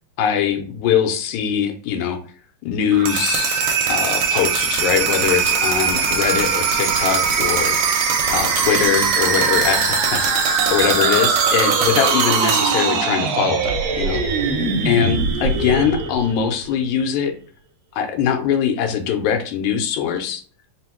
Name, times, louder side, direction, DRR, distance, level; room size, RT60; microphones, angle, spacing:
voice 1, 0.2-2.2 2.7-3.6 3.9-7.8 8.3-14.5 14.9-17.3 17.9-20.4, left 8 dB, 90° left, 4 dB, 2.1 m, -22 dB
sound 1, 2.9-16.8, right 5 dB, 75° right, 1.7 m, -20 dB
4.9 x 2.0 x 4.4 m, 0.42 s
omnidirectional pair, 3.3 m